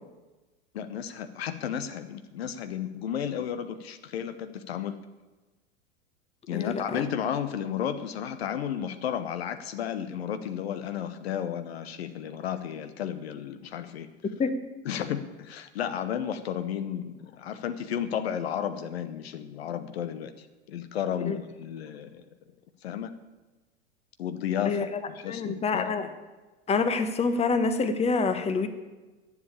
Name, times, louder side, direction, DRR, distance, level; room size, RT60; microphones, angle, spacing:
voice 1, 0.7-5.0 6.5-14.1 14.8-22.2 22.8-23.1 24.2-26.1, left 9 dB, 65° left, 11 dB, 0.9 m, -33 dB
voice 2, 6.5-7.0 14.4-14.6 21.3-21.4 24.6-24.9 25.3-26.1 26.7-28.7, left 4 dB, 20° left, 9 dB, 1.1 m, -26 dB
11.0 x 7.5 x 8.6 m, 1.2 s
figure-of-eight pair, 85°, 33 cm